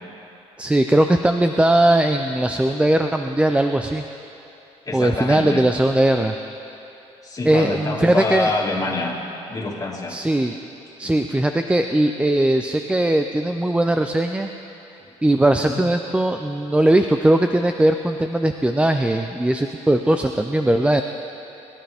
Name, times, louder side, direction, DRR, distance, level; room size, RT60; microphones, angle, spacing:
voice 1, 0.6-4.0 4.9-6.3 7.4-8.5 10.1-10.6 11.0-14.5 15.2-21.0, right 1 dB, 10° right, 6 dB, 0.5 m, -19 dB
voice 2, 4.9-5.6 7.2-9.2 9.5-10.2 11.0-11.1 15.7-15.8, left 2 dB, 30° left, -2 dB, 2.3 m, -26 dB
22.5 x 11.5 x 3.5 m, 2.9 s
cardioid pair, 90°, 12 cm